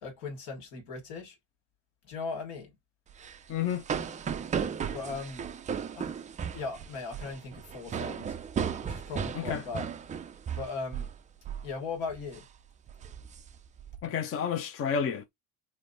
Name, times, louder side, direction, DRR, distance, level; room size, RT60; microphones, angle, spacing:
voice 1, 0.0-1.4 2.1-2.7 4.9-5.5 5.9-6.1 6.5-8.4 8.8-9.9 10.5-11.1 11.6-12.4, left 4 dB, 75° left, 1.7 m, -38 dB
sound 1, 3.1-11.2 11.4-11.7 12.1-12.4 12.9-14.0, right 7 dB, 20° right, 0.3 m, -35 dB
voice 2, 3.5-3.8 9.3-9.6 14.0-15.3, left 7 dB, 30° left, 0.6 m, -30 dB
3.2 x 2.1 x 2.5 m
hypercardioid pair, 75°, 43 cm